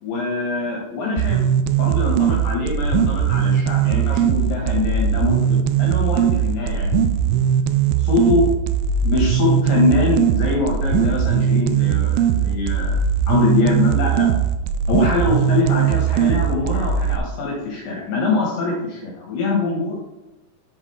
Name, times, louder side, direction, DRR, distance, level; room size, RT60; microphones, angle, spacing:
voice 1, 0.0-1.5 1.8-7.4 8.0-8.4 9.0-13.0 13.3-14.3 14.9-19.9, left 3 dB, 65° left, -3 dB, 3.2 m, -23 dB
sound 1, 1.2-17.2, right 8 dB, 85° right, 2.5 m, -19 dB
7.6 x 6.7 x 4.9 m, 1.0 s
omnidirectional pair, 5.4 m